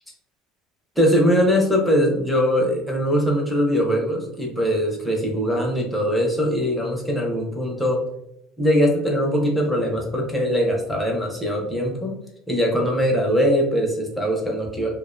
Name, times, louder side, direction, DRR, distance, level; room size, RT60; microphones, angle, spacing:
voice 1, 1.0-8.0 8.6-12.1 12.5-14.9, equal, 5° left, -1 dB, 0.6 m, -21 dB
2.4 x 2.1 x 2.4 m, 0.78 s
cardioid pair, 135°, 0 cm